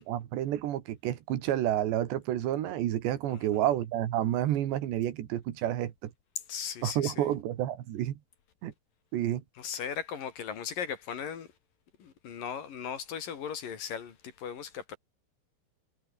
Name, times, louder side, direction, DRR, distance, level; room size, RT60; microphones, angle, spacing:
voice 1, 0.0-6.1 6.8-8.2 8.6-8.7 9.1-9.4, right 12 dB, 85° right, 4.0 m, -30 dB
voice 2, 3.3-3.6 6.5-7.3 9.6-11.5 12.0-15.0, left 8 dB, 55° left, 3.9 m, -38 dB
omnidirectional pair, 4.9 m